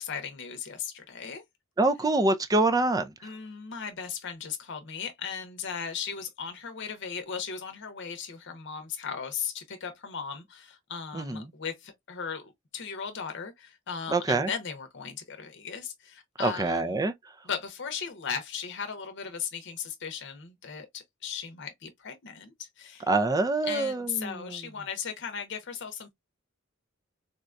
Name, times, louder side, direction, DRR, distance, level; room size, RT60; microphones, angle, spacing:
voice 1, 0.0-1.4 3.2-17.0 17.4-23.1 23.6-26.1, left 6 dB, 60° left, 0.8 m, -37 dB
voice 2, 1.8-3.1 11.1-11.4 14.1-14.5 16.4-17.1 23.1-24.3, right 2 dB, 15° right, 0.4 m, -25 dB
4.0 x 2.3 x 2.4 m
head